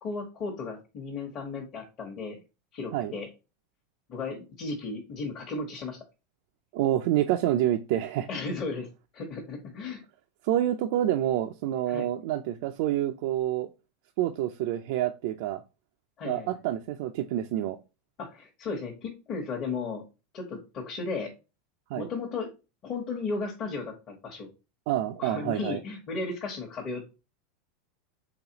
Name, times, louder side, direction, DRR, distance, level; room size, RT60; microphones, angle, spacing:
voice 1, 0.0-2.4 2.7-3.3 4.1-6.0 8.3-8.9 9.1-10.0 11.9-12.1 16.2-16.5 18.2-20.0 20.3-21.3 22.0-22.5 22.8-24.5 25.2-27.1, left 4 dB, 35° left, 1.0 m, -35 dB
voice 2, 6.7-8.3 10.4-13.7 14.2-15.6 16.2-17.8 21.9-22.1 24.9-25.8, right 12 dB, 65° right, 0.3 m, -27 dB
4.0 x 3.3 x 2.8 m
supercardioid pair, 140°, 0 cm